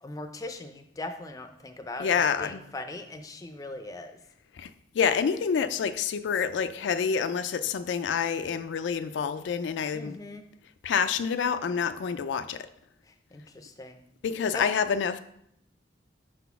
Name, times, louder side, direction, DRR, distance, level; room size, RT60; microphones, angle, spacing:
voice 1, 0.0-4.1 9.9-10.4 13.1-14.0 14.5-14.7, left 2 dB, 20° left, 6 dB, 0.4 m, -40 dB
voice 2, 2.0-2.6 4.5-10.2 10.8-12.7 14.2-15.2, left 6 dB, 80° left, 11 dB, 0.3 m, -27 dB
4.9 x 4.0 x 5.7 m, 0.74 s
head